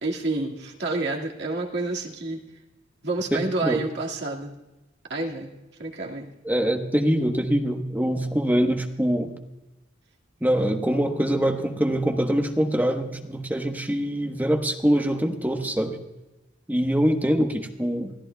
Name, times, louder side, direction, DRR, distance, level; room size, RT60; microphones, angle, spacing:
voice 1, 0.0-2.4 3.0-4.6 5.1-5.5 5.8-6.3, right 2 dB, 65° right, 0 dB, 2.0 m, -29 dB
voice 2, 3.3-3.8 6.4-9.3 10.4-16.0 16.7-18.1, equal, 10° right, 4 dB, 1.1 m, -24 dB
25.5 x 14.5 x 2.3 m, 1.0 s
head